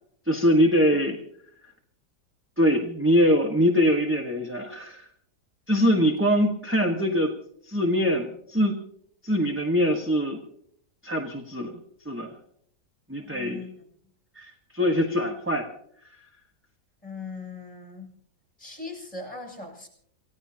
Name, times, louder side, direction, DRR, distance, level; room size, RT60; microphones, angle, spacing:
voice 1, 0.3-1.2 2.6-5.1 5.7-7.3 7.7-8.8 9.2-10.4 11.0-11.8 12.0-12.4 13.1-13.6 14.3-15.7, equal, 10° right, 2 dB, 1.3 m, -23 dB
voice 2, 13.2-13.7 17.0-18.1 18.6-19.9, left 3 dB, 20° left, 1 dB, 6.8 m, -39 dB
28.0 x 16.5 x 2.9 m, 0.66 s
omnidirectional pair, 1.7 m